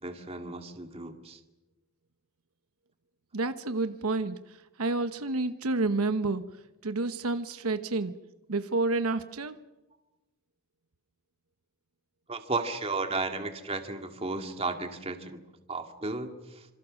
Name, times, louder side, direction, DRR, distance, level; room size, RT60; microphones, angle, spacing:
voice 1, 0.0-1.4 12.3-15.4 15.7-16.7, right 3 dB, 25° right, 5 dB, 2.2 m, -34 dB
voice 2, 3.3-6.4 6.8-8.2 8.5-9.6, right 3 dB, 75° right, 10 dB, 1.0 m, -29 dB
27.5 x 26.5 x 6.5 m, 1.0 s
head